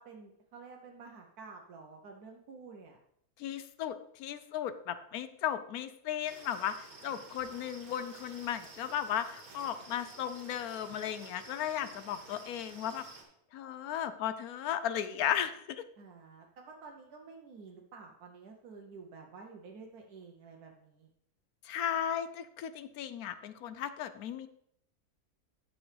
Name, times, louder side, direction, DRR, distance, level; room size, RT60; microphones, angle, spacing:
voice 1, 0.0-3.0 16.0-21.1, right 4 dB, 90° right, 1 dB, 1.4 m, -50 dB
voice 2, 3.4-13.0 13.5-15.8 21.6-24.5, left 10 dB, 80° left, 12 dB, 1.1 m, -35 dB
sound 1, 6.2-13.2, right 3 dB, 70° right, 1.9 m, -52 dB
10.0 x 6.9 x 3.3 m, 0.73 s
omnidirectional pair, 1.6 m